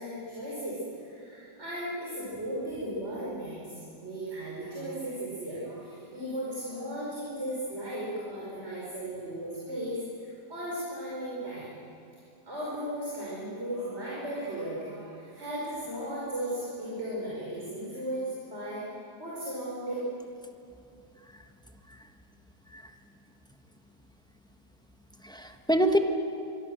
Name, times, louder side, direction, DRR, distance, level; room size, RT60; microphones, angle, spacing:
voice 1, 0.0-3.7 4.0-11.7 12.5-18.8 19.2-19.9, right 1 dB, 40° right, -7 dB, 5.6 m, -36 dB
voice 2, 25.2-26.0, equal, 5° left, 5 dB, 1.2 m, -27 dB
25.5 x 23.5 x 7.7 m, 2.6 s
omnidirectional pair, 1.9 m